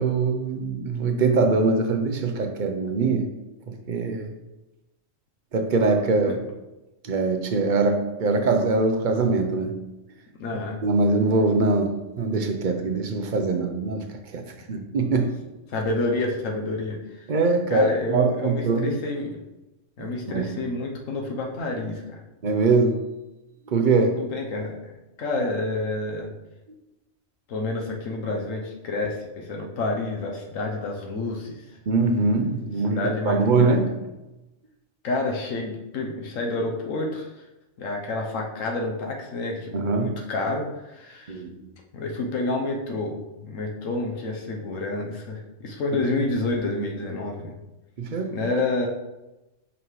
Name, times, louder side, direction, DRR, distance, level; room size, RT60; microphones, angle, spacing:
voice 1, 0.0-3.3 3.7-4.3 5.5-6.4 7.0-9.8 10.8-15.3 17.3-19.0 20.0-20.5 22.4-23.0 23.7-24.2 31.9-34.0 39.7-40.2 41.3-41.6 48.0-48.5, right 3 dB, 45° right, 0.7 m, -23 dB
voice 2, 10.4-10.8 15.7-17.0 17.7-19.4 20.0-22.2 24.1-24.9 25.2-26.3 27.5-31.7 32.9-33.7 35.0-37.3 37.8-41.4 41.9-47.5 48.3-48.9, left 2 dB, 85° left, 1.2 m, -29 dB
5.6 x 5.4 x 3.1 m
omnidirectional pair, 1.3 m